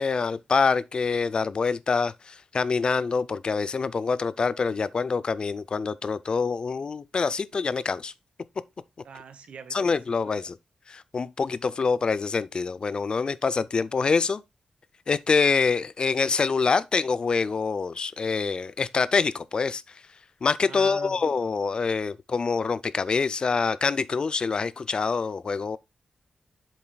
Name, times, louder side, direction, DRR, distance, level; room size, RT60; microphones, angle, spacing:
voice 1, 0.0-8.1 9.7-10.6 10.9-14.4 15.1-19.8 20.4-25.8, left 4 dB, 45° left, 0.4 m, -25 dB
voice 2, 9.0-9.9 10.2-10.4 20.6-21.2, right 5 dB, 80° right, 1.1 m, -43 dB
7.6 x 7.3 x 2.3 m
wide cardioid pair, 100°, 2 cm